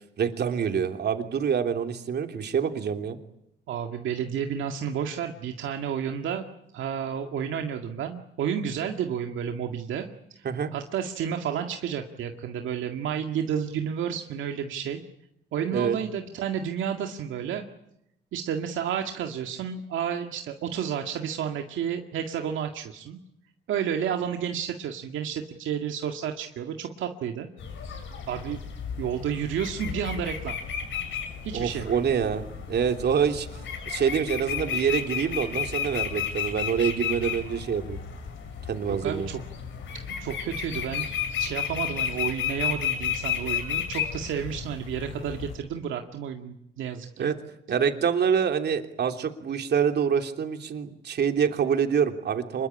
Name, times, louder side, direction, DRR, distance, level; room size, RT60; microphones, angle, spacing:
voice 1, 0.2-3.2 10.4-10.7 15.7-16.0 31.5-33.5 33.8-38.0 38.7-39.3 47.2-47.4 47.7-52.7, right 7 dB, 55° right, 6 dB, 3.1 m, -26 dB
voice 2, 3.7-6.5 6.7-10.5 10.7-15.0 15.5-17.7 18.3-23.2 23.7-27.5 28.3-28.6 29.0-30.6 31.4-31.9 38.9-39.4 40.1-41.1 41.4-47.3, right 8 dB, 80° right, 4 dB, 2.0 m, -31 dB
sound 1, 27.6-45.5, left 8 dB, 75° left, 7.4 m, -33 dB
26.5 x 22.0 x 10.0 m, 0.80 s
cardioid pair, 90°, 20 cm